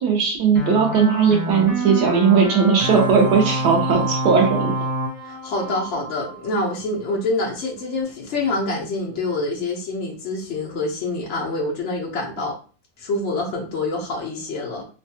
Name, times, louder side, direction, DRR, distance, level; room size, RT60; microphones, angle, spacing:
voice 1, 0.0-4.7, right 6 dB, 70° right, 1 dB, 1.1 m, -18 dB
sound 1, 0.6-6.7, right 1 dB, ahead, 0.4 m, -27 dB
voice 2, 5.3-12.5 13.0-14.9, left 2 dB, 85° left, -2 dB, 0.6 m, -26 dB
3.2 x 2.2 x 2.7 m, 0.38 s
omnidirectional pair, 2.0 m